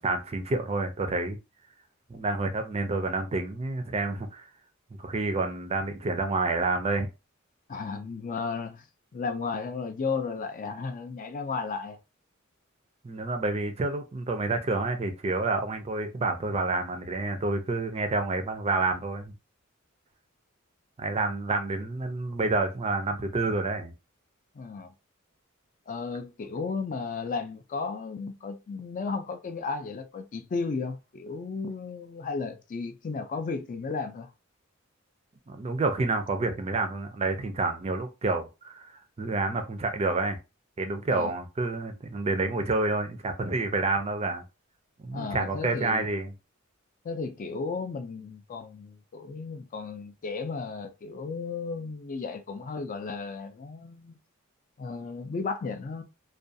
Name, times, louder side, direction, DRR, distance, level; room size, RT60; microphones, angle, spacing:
voice 1, 0.0-1.4 2.1-4.5 5.0-7.1 13.0-19.3 21.0-23.9 35.5-40.4 40.8-44.4 45.0-46.3, right 3 dB, 30° right, 0.4 m, -29 dB
voice 2, 7.7-8.9 9.1-12.0 24.5-24.9 25.9-34.3 41.1-41.3 45.1-46.1 47.0-54.2 54.8-56.0, left 4 dB, 40° left, 0.4 m, -34 dB
2.4 x 2.2 x 2.6 m
head